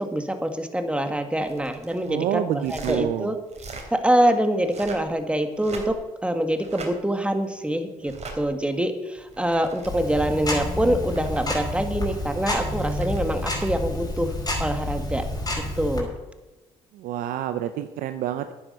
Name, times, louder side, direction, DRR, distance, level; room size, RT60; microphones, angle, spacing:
voice 1, 0.0-3.4 3.9-5.9 6.2-15.2 15.6-16.1, right 1 dB, 10° right, 7 dB, 1.8 m, -25 dB
sound 1, 1.4-2.1 2.6-3.0 3.5-3.9 4.6-5.1 5.5-6.1 6.6-6.9 8.0-8.4 9.2-9.9 10.8-11.5 12.6-13.8 15.6-15.8, right 4 dB, 50° right, 3.4 m, -41 dB
voice 2, 2.1-3.3 16.9-18.5, right 11 dB, 80° right, 9 dB, 0.7 m, -28 dB
Tick-tock, 9.8-16.0, left 1 dB, 25° left, 5.3 m, -29 dB
10.0 x 9.9 x 6.6 m, 1.1 s
supercardioid pair, 70°, 14 cm